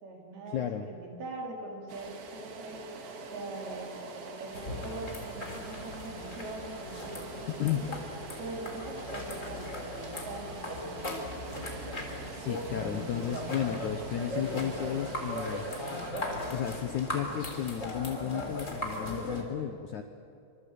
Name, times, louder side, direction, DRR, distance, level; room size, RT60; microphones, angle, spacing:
voice 1, 0.0-2.8 3.3-8.0 8.4-11.2, right 2 dB, 65° right, 0 dB, 5.7 m, -42 dB
voice 2, 0.5-0.9 7.5-7.9 12.3-15.7 16.5-20.0, left 10 dB, 70° left, 6 dB, 1.9 m, -33 dB
sound 1, 1.9-16.1, right 4 dB, 85° right, 4.4 m, -46 dB
sound 2, 2.7-18.5, right 2 dB, 50° right, 4.8 m, -50 dB
sound 3, 4.5-19.4, left 1 dB, 20° left, 3.2 m, -38 dB
26.0 x 25.5 x 8.5 m, 2.5 s
omnidirectional pair, 4.7 m